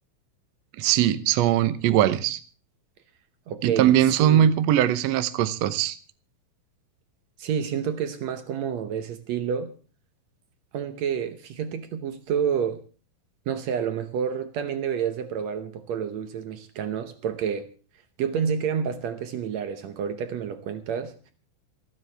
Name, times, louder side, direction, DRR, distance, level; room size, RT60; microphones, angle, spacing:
voice 1, 0.8-2.4 3.6-6.0, right 11 dB, 90° right, 12 dB, 1.5 m, -21 dB
voice 2, 3.5-4.5 7.4-9.7 10.7-12.8 13.5-17.7 18.2-21.1, right 7 dB, 70° right, 9 dB, 1.7 m, -29 dB
28.0 x 9.6 x 3.4 m, 0.38 s
omnidirectional pair, 4.2 m